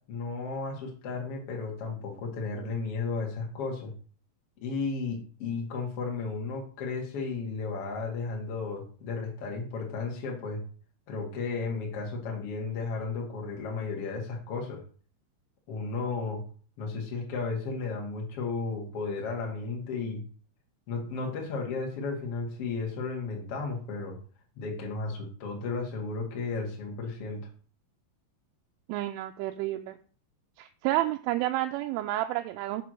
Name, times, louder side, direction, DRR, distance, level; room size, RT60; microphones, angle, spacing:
voice 1, 0.1-3.9 4.6-10.6 11.1-14.8 15.7-16.4 16.8-20.2 20.9-24.2 24.5-27.4, left 4 dB, 65° left, 0 dB, 1.5 m, -34 dB
voice 2, 28.9-30.0 30.6-32.8, right 15 dB, 90° right, 5 dB, 3.1 m, -30 dB
7.3 x 4.5 x 6.2 m, 0.42 s
omnidirectional pair, 5.6 m